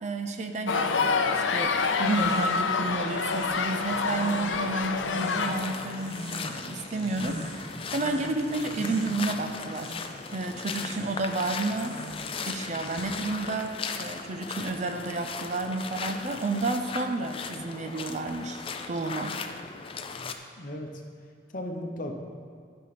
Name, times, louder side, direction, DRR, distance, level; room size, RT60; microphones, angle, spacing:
voice 1, 0.0-9.9 10.3-12.0 12.5-18.6 18.9-19.3, right 2 dB, 35° right, 5 dB, 0.5 m, -31 dB
sound 1, 0.7-5.7, left 5 dB, 75° left, 0.6 m, -27 dB
sound 2, 1.9-13.5, right 1 dB, 55° right, 1.1 m, -43 dB
sound 3, 5.2-20.3, left 5 dB, 30° left, 0.4 m, -38 dB
voice 2, 20.2-21.0 21.5-22.1, left 1 dB, 45° left, 3 dB, 0.9 m, -37 dB
12.5 x 5.7 x 4.2 m, 2.3 s
head